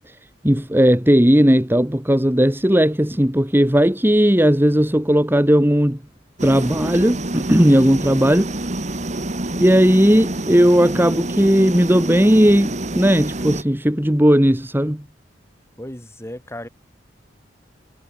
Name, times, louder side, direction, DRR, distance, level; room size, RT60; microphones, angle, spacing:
voice 1, 0.4-6.0 6.4-8.5 9.5-15.0, equal, 10° right, 2.1 m, -16 dB
sound 1, 6.4-13.6, right 1 dB, 40° right, 2.3 m, -27 dB
voice 2, 15.8-16.7, left 1 dB, 15° left, 7.2 m, -35 dB
head